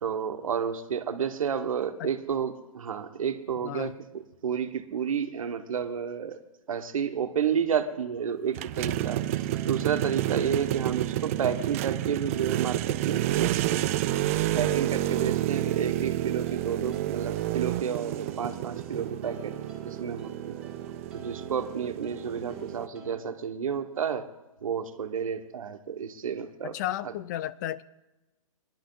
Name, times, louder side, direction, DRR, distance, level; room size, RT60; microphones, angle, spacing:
voice 1, 0.0-3.9 4.4-6.4 6.7-14.0 14.5-19.5 19.8-20.7 21.1-24.3 24.6-26.7, right 7 dB, 70° right, 8 dB, 1.5 m, -31 dB
voice 2, 3.6-4.0 26.6-27.8, left 13 dB, 30° left, 17 dB, 0.5 m, -33 dB
sound 1, 8.5-22.9, right 14 dB, 25° right, 0.3 m, -30 dB
sound 2, 9.4-23.2, right 3 dB, 5° right, 2.0 m, -49 dB
20.0 x 11.5 x 4.0 m, 1.0 s
hypercardioid pair, 150°, 18 cm